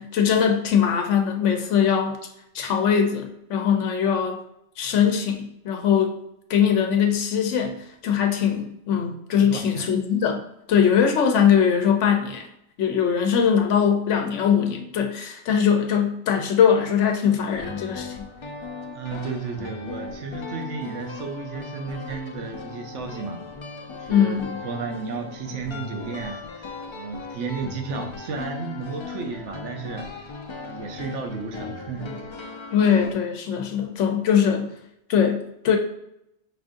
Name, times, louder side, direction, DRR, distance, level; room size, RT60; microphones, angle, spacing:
voice 1, 0.0-2.2 2.5-4.4 4.8-6.2 6.5-7.8 8.0-10.4 10.7-12.5 12.8-18.2 24.1-24.6 32.7-34.7 35.1-35.8, left 7 dB, 90° left, 5 dB, 1.0 m, -21 dB
voice 2, 9.3-9.9 18.9-23.4 23.9-30.3 30.6-32.2, right 5 dB, 80° right, 4 dB, 1.0 m, -33 dB
sound 1, 17.5-33.1, left 4 dB, 45° left, 0.4 m, -38 dB
5.5 x 2.6 x 3.7 m, 0.80 s
omnidirectional pair, 1.2 m